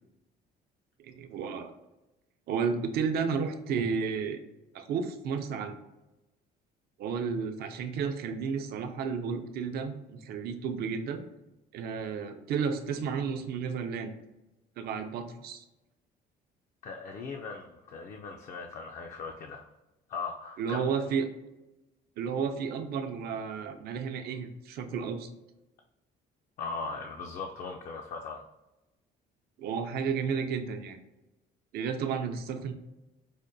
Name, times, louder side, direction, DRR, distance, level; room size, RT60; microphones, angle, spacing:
voice 1, 1.0-1.7 2.5-4.4 4.7-5.8 7.0-11.2 11.7-14.1 14.8-15.6 20.6-21.3 22.2-25.3 29.6-31.0 31.7-32.7, right 6 dB, 65° right, 7 dB, 0.5 m, -32 dB
voice 2, 16.8-19.6 20.1-20.9 26.6-28.4, left 4 dB, 50° left, 3 dB, 0.4 m, -39 dB
4.9 x 2.1 x 2.6 m, 0.99 s
cardioid pair, 110°, 17 cm